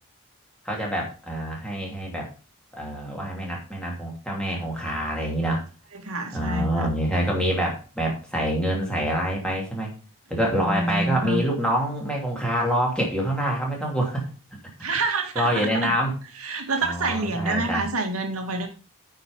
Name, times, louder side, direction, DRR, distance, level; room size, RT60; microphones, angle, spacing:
voice 1, 0.6-2.3 2.7-5.6 6.3-9.9 10.3-14.3 15.3-16.1 16.8-17.8, equal, 5° left, -2 dB, 2.8 m, -26 dB
voice 2, 5.9-6.9 10.5-11.4 14.8-15.9 16.4-18.7, right 3 dB, 90° right, 5 dB, 1.9 m, -27 dB
9.3 x 5.4 x 5.3 m, 0.34 s
head